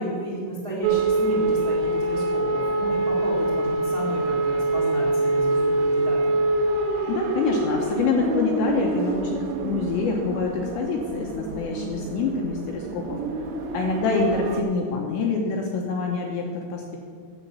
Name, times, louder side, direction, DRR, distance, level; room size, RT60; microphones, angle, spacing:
voice 1, 0.0-6.4, right 1 dB, 45° right, -6 dB, 1.2 m, -32 dB
sound 1, 0.8-14.6, right 2 dB, 75° right, 3.1 m, -25 dB
voice 2, 7.1-13.2 13.7-17.0, left 4 dB, 80° left, 1 dB, 2.6 m, -26 dB
10.5 x 8.1 x 6.8 m, 2.2 s
omnidirectional pair, 5.9 m